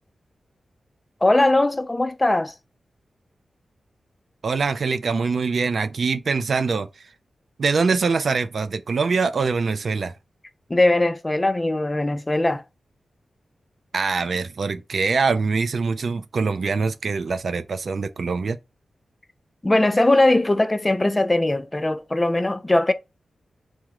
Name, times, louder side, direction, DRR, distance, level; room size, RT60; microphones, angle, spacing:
voice 1, 1.2-2.5 10.7-12.6 19.6-22.9, left 2 dB, 25° left, 0.4 m, -20 dB
voice 2, 4.4-6.9 7.6-10.1 13.9-18.6, right 4 dB, 70° right, 0.3 m, -23 dB
3.5 x 2.0 x 2.9 m
cardioid pair, 55°, 0 cm